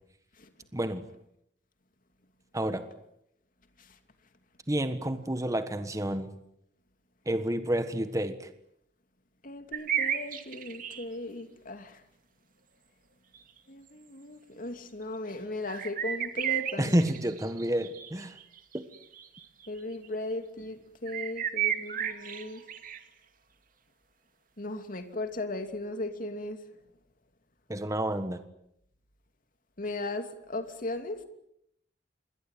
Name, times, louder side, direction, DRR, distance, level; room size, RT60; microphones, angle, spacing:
voice 1, 0.7-1.0 2.5-2.9 4.7-6.3 7.2-8.5 16.8-18.4 18.7-18.8 27.7-28.4, right 1 dB, 20° right, 1.5 m, -29 dB
voice 2, 9.4-12.0 13.7-17.0 19.7-22.6 24.6-26.6 29.8-31.2, left 2 dB, 50° left, 2.9 m, -37 dB
sound 1, 9.7-11.0 13.3-13.4 15.7-19.7 20.0-20.1 21.1-23.0, right 10 dB, 50° right, 2.4 m, -33 dB
27.5 x 22.0 x 9.3 m
head